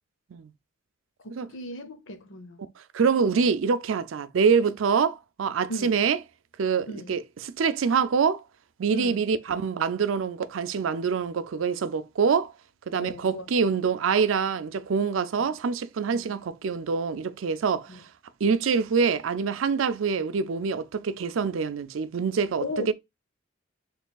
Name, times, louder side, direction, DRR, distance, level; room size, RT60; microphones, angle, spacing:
voice 1, 1.2-2.7 3.2-3.3 5.7-6.0 6.9-7.1 8.9-9.3 12.9-13.5 15.4-15.5 16.1-16.4 17.9-18.0 22.6-22.9, left 1 dB, 70° left, 0.8 m, -37 dB
voice 2, 2.9-6.2 6.6-7.2 7.6-8.4 8.8-12.5 12.9-17.9 18.4-22.9, right 5 dB, 75° right, 0.4 m, -25 dB
4.4 x 3.2 x 2.3 m
head